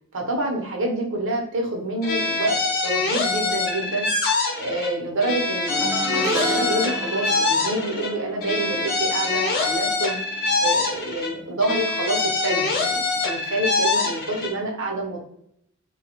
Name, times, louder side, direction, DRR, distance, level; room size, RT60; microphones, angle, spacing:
voice 1, 0.1-2.6 2.8-4.1 4.6-10.2 10.6-15.2, right 1 dB, 60° right, 0 dB, 0.9 m, -27 dB
sound 1, 2.0-4.9 5.2-8.1 8.4-11.3 11.6-14.5, left 3 dB, 45° left, 0.7 m, -24 dB
sound 2, 5.7-11.1 11.3-11.7 12.9-13.0, right 2 dB, 15° right, 0.5 m, -32 dB
3.5 x 2.3 x 2.9 m, 0.72 s
head